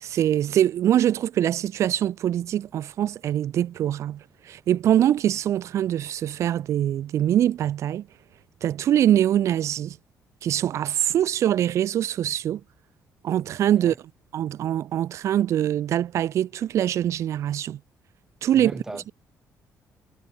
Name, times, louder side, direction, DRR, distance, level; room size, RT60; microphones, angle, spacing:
voice 1, 0.0-8.0 8.6-10.0 10.4-12.6 13.2-13.9 14.3-17.8 18.4-18.7, right 11 dB, 55° right, 0.4 m, -23 dB
voice 2, 18.5-19.1, right 1 dB, 10° right, 1.1 m, -38 dB
cardioid pair, 140°, 6 cm